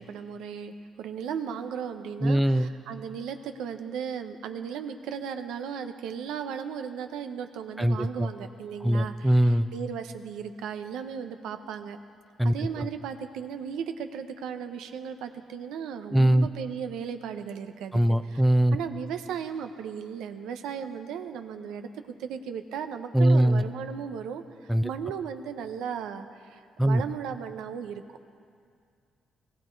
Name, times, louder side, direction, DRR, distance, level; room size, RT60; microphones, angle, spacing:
voice 1, 0.0-12.0 12.4-18.4 18.7-21.9 22.2-28.0, right 7 dB, 90° right, 8 dB, 0.8 m, -36 dB
voice 2, 2.2-2.7 7.8-8.3 8.8-9.7 12.4-12.9 16.1-16.5 17.9-18.8 23.1-23.6 24.7-24.9 26.8-27.0, right 1 dB, 5° right, 10 dB, 0.5 m, -22 dB
19.0 x 15.5 x 4.6 m, 2.3 s
cardioid pair, 90°, 0 cm